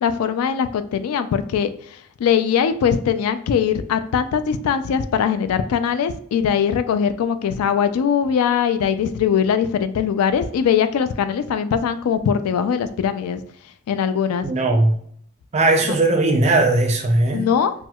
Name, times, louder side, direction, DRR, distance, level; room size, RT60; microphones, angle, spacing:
voice 1, 0.0-13.4 13.9-14.5 17.3-17.7, left 7 dB, 85° left, 0.3 m, -21 dB
voice 2, 14.4-15.0 15.5-17.5, right 2 dB, 30° right, 0.4 m, -18 dB
4.3 x 2.1 x 2.2 m
head